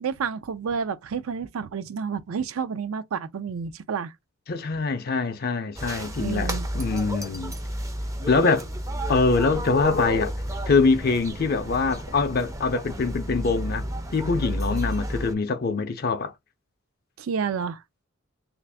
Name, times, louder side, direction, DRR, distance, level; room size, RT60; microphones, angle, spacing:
voice 1, 0.0-4.1 6.2-6.7 17.2-17.8, right 6 dB, 75° right, 0.4 m, -30 dB
voice 2, 4.5-7.5 8.3-8.7 9.1-10.3 10.7-13.8 14.1-16.3, left 4 dB, 45° left, 0.4 m, -24 dB
sound 1, 5.8-15.3, equal, 15° right, 0.4 m, -32 dB
3.3 x 2.5 x 3.3 m
head